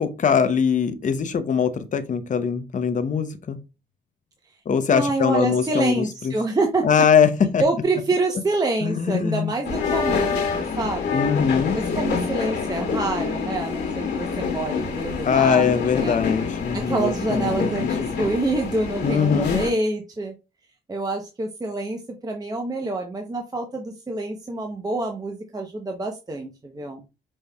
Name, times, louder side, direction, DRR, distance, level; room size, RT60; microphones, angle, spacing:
voice 1, 0.0-3.6 4.7-6.3 6.8-7.6 8.8-9.5 11.1-11.8 15.3-18.1 19.0-19.6, left 6 dB, 40° left, 0.7 m, -22 dB
voice 2, 4.9-6.8 7.6-11.3 12.0-15.7 16.0-16.2 16.7-20.3 20.9-27.0, right 2 dB, 20° right, 0.7 m, -27 dB
sound 1, 9.6-19.7, left 5 dB, 60° left, 1.7 m, -27 dB
5.3 x 3.1 x 2.2 m
cardioid pair, 90°, 20 cm